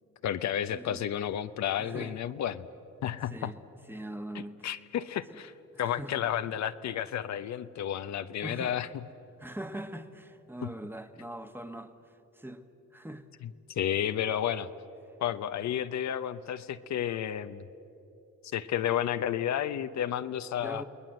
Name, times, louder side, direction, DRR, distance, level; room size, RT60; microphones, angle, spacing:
voice 1, 0.2-2.7 3.0-3.5 4.3-5.5 5.8-8.9 10.6-10.7 13.4-14.7 15.2-17.6 18.5-20.8, left 10 dB, 65° left, 11 dB, 0.8 m, -32 dB
voice 2, 1.8-2.1 3.3-3.6 3.9-4.7 5.3-5.4 5.7-6.3 8.4-8.8 9.4-11.9 12.3-12.6 12.9-13.2 20.6-20.8, right 1 dB, 5° right, 8 dB, 1.3 m, -41 dB
29.5 x 19.5 x 7.8 m, 3.0 s
cardioid pair, 90°, 30 cm